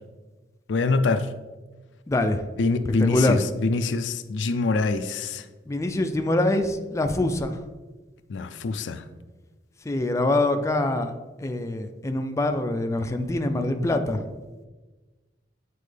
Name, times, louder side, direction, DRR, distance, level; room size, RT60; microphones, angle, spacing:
voice 1, 0.7-1.3 2.6-5.4 8.3-9.0, left 3 dB, 80° left, 10 dB, 0.4 m, -25 dB
voice 2, 2.1-2.5 2.9-3.4 5.7-7.6 9.8-11.1 11.4-14.2, left 2 dB, 15° left, 6 dB, 0.4 m, -24 dB
8.3 x 4.2 x 3.3 m, 1.2 s
head